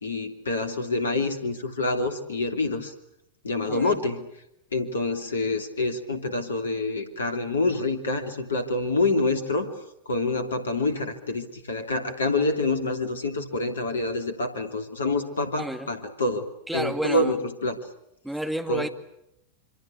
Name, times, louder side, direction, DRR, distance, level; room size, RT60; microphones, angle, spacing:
voice 1, 0.0-2.9 3.4-4.3 4.7-9.7 10.0-16.5 16.7-17.8 18.7-18.9, left 2 dB, 70° left, 7 dB, 3.1 m, -27 dB
voice 2, 15.6-15.9 16.7-17.4 18.2-18.9, right 1 dB, 5° right, 6 dB, 2.1 m, -30 dB
26.0 x 25.5 x 8.5 m, 0.81 s
figure-of-eight pair, 90°, 0 cm